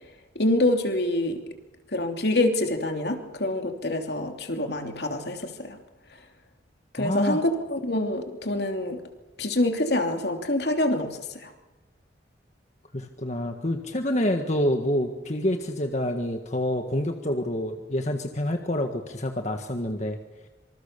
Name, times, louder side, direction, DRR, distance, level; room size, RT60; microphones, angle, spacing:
voice 1, 0.3-1.4 1.9-5.8 6.9-9.0 9.4-11.5, left 1 dB, 65° left, 4 dB, 3.1 m, -26 dB
voice 2, 7.0-7.4 12.9-20.2, left 1 dB, 40° left, 5 dB, 1.7 m, -27 dB
26.5 x 26.0 x 6.9 m, 1.1 s
head